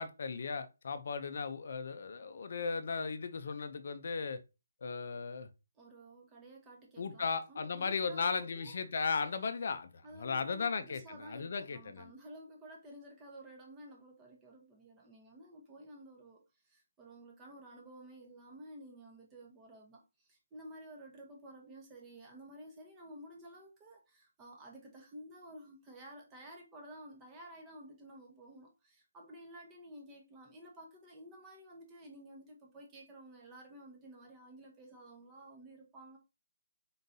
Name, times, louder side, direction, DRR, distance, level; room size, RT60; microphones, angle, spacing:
voice 1, 0.0-4.4 4.8-5.5 7.0-12.1, left 5 dB, 50° left, 0.6 m, -36 dB
voice 2, 5.7-8.8 10.0-36.2, right 1 dB, 10° right, 0.9 m, -53 dB
3.9 x 3.8 x 2.7 m
hypercardioid pair, 170°, 0 cm